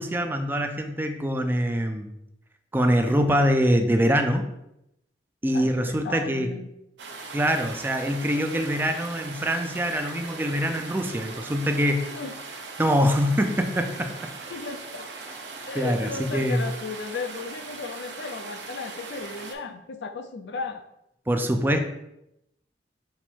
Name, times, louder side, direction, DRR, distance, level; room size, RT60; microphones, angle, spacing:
voice 1, 0.0-2.1 2.7-4.4 5.4-6.5 7.3-12.1 12.8-14.1 15.7-16.6 21.3-21.8, equal, 10° right, 5 dB, 0.4 m, -24 dB
voice 2, 5.5-6.7 12.1-12.3 14.5-15.1 15.6-20.8, left 4 dB, 75° left, 8 dB, 0.5 m, -35 dB
sound 1, 7.0-19.6, right 3 dB, 85° right, 0.7 m, -40 dB
5.6 x 2.1 x 4.5 m, 0.83 s
head